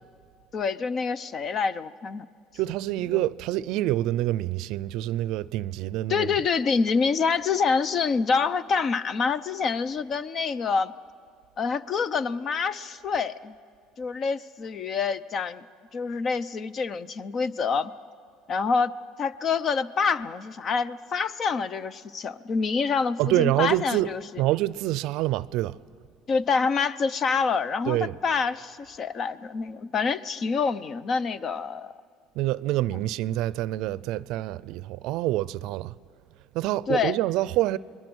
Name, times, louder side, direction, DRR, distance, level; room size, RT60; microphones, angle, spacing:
voice 1, 0.5-2.3 6.1-10.9 11.6-13.5 14.0-15.6 15.9-17.9 18.5-18.9 19.2-24.4 26.3-31.9 33.0-33.1 36.9-37.2, left 5 dB, 45° left, 0.8 m, -26 dB
voice 2, 2.6-6.3 23.2-24.1 24.4-25.8 27.9-28.1 32.4-35.9 36.5-37.8, right 15 dB, 70° right, 0.5 m, -26 dB
28.5 x 21.5 x 6.3 m
supercardioid pair, 90°, 0 cm